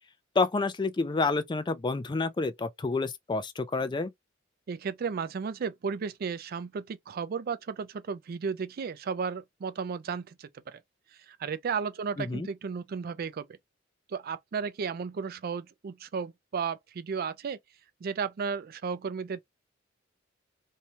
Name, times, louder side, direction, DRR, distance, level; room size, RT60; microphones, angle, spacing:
voice 1, 0.4-4.1 12.2-12.5, left 3 dB, 25° left, 0.4 m, -29 dB
voice 2, 4.7-10.8 11.3-13.5 14.1-17.6 18.0-19.4, right 6 dB, 50° right, 0.4 m, -34 dB
2.7 x 2.2 x 2.8 m
head